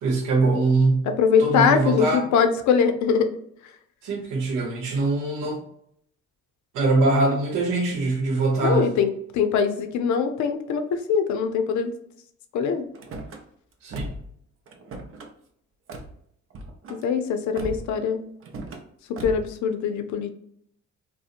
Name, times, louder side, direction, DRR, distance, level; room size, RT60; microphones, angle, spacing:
voice 1, 0.0-1.1 1.4-2.2 4.0-5.6 6.7-8.9 13.8-14.1, right 3 dB, 85° right, 0 dB, 0.8 m, -22 dB
voice 2, 1.1-3.3 8.6-11.9 12.5-12.8 17.0-18.2 19.2-20.3, left 6 dB, 70° left, 8 dB, 0.5 m, -22 dB
Car / Slam, 12.9-13.4 13.9-14.3 14.7-15.3 15.9-16.1 16.5-17.0 17.6-18.0 18.4-18.8 19.2-19.5, right 1 dB, 45° right, 0.5 m, -37 dB
2.7 x 2.1 x 2.4 m, 0.69 s
cardioid pair, 90°, 30 cm